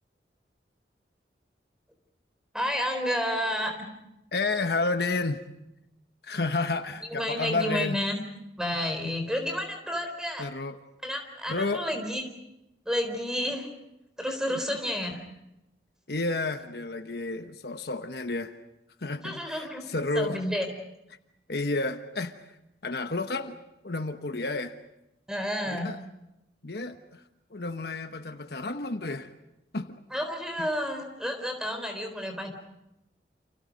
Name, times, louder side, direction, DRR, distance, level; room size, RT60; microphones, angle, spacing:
voice 1, 2.5-3.9 7.1-8.2 8.6-10.5 11.0-12.2 12.9-13.7 14.2-15.2 19.2-19.8 20.1-20.7 25.3-25.9 30.1-32.5, equal, 5° right, 5 dB, 4.1 m, -30 dB
voice 2, 4.3-5.4 6.2-8.0 10.4-10.8 11.5-11.8 14.5-14.6 16.1-18.6 19.0-20.4 21.5-22.3 22.8-23.6 23.8-24.8 25.7-26.0 26.6-27.2 27.5-29.3 29.7-30.0 30.6-30.7, left 3 dB, 65° left, 8 dB, 1.1 m, -31 dB
29.5 x 28.5 x 5.2 m, 0.88 s
head